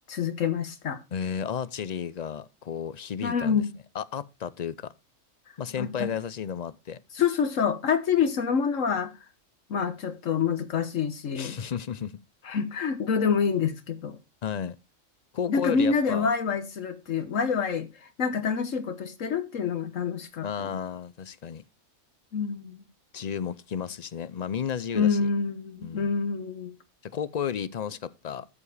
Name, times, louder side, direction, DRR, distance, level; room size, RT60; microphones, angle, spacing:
voice 1, 0.1-1.0 3.2-3.7 5.8-6.1 7.1-9.1 9.7-11.6 12.4-14.2 15.5-20.7 22.3-22.8 24.9-26.7, left 6 dB, 75° left, 1.4 m, -27 dB
voice 2, 1.1-3.6 3.9-4.9 5.6-7.0 11.4-12.2 14.4-14.8 15.3-16.3 20.4-21.6 23.1-25.3 25.8-26.1 27.0-28.5, left 8 dB, 55° left, 0.4 m, -33 dB
13.5 x 4.9 x 4.8 m
omnidirectional pair, 1.3 m